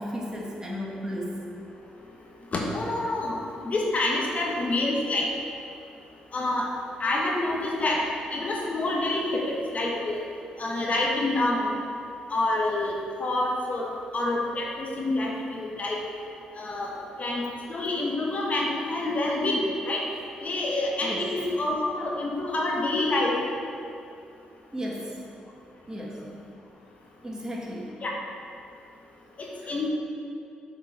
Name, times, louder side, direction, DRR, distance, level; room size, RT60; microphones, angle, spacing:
voice 1, 0.0-1.4 21.0-21.3 24.7-25.1 25.9-26.2 27.2-27.9 29.6-29.7, equal, 20° right, -3 dB, 1.9 m, -34 dB
voice 2, 2.5-3.4 3.6-5.3 6.3-6.7 7.0-8.0 8.3-10.2 10.6-11.7 12.3-12.9 13.2-16.0 16.6-16.9 17.2-20.0 20.4-23.4 28.0-28.1 29.7-29.9, left 2 dB, 45° left, -2 dB, 1.5 m, -27 dB
6.7 x 5.0 x 6.3 m, 2.5 s
hypercardioid pair, 45°, 3 cm